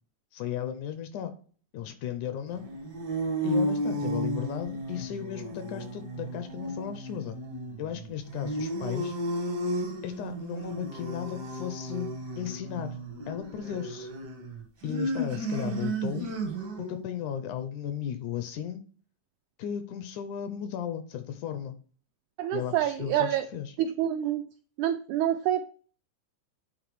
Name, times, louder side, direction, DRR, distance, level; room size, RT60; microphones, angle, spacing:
voice 1, 0.3-1.3 1.7-2.7 3.4-7.4 7.8-9.2 10.0-12.1 12.4-13.0 13.3-14.1 14.8-16.3 16.8-18.9 19.6-21.8 22.5-23.8, left 9 dB, 80° left, 9 dB, 1.9 m, -35 dB
sound 1, 2.5-17.0, right 1 dB, 65° right, 1.0 m, -33 dB
voice 2, 22.4-23.5 23.8-24.5 24.8-25.7, right 11 dB, 85° right, 8 dB, 1.7 m, -27 dB
9.0 x 3.8 x 4.7 m, 0.43 s
omnidirectional pair, 3.9 m